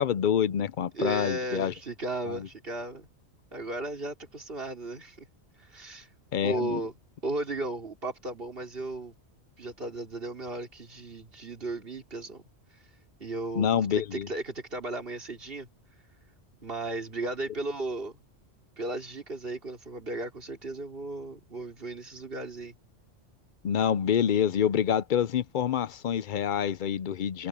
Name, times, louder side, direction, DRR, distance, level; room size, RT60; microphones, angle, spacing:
voice 1, 0.0-1.7 6.3-6.8 13.6-14.3 23.6-27.5, left 9 dB, 55° left, 0.6 m, -26 dB
voice 2, 0.9-3.1 3.5-5.3 5.6-6.1 6.4-7.0 7.2-9.1 9.6-12.4 12.7-12.8 13.2-15.7 16.6-18.1 18.8-22.8, right 2 dB, 55° right, 3.8 m, -35 dB
omnidirectional pair, 1.2 m